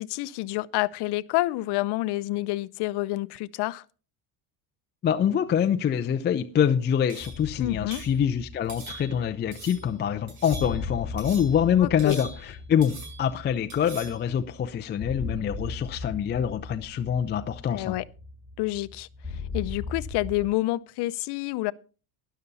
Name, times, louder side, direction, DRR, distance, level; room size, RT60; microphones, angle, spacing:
voice 1, 0.0-3.8 7.6-8.0 11.8-12.2 17.7-18.0 18.6-21.7, left 18 dB, 55° left, 0.7 m, -28 dB
voice 2, 5.0-18.0, left 8 dB, 20° left, 0.5 m, -25 dB
sound 1, 7.1-7.5 7.9-8.2 8.7-9.2 9.5-9.9 10.3-10.9 11.2-11.6 12.0-12.6 12.8-13.3 13.7-14.2, right 4 dB, 70° right, 6.1 m, -43 dB
sound 2, 7.2-20.4, left 3 dB, ahead, 5.0 m, -38 dB
12.5 x 11.0 x 4.1 m
cardioid pair, 155°, 48 cm